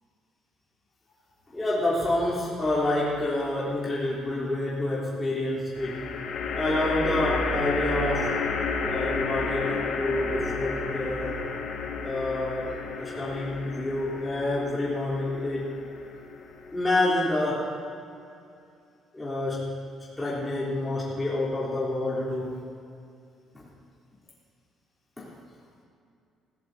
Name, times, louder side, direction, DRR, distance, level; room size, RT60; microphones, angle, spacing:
voice 1, 1.5-6.1 6.5-8.3 8.8-11.4 12.0-15.7 16.7-17.7 19.1-19.7 20.2-22.6 23.5-23.6 25.2-25.3, left 1 dB, 15° left, -9 dB, 3.5 m, -28 dB
sound 1, 2.6-3.3 5.7-17.1, left 4 dB, 70° left, 1.6 m, -32 dB
20.0 x 16.5 x 2.8 m, 2.5 s
cardioid pair, 130°, 0 cm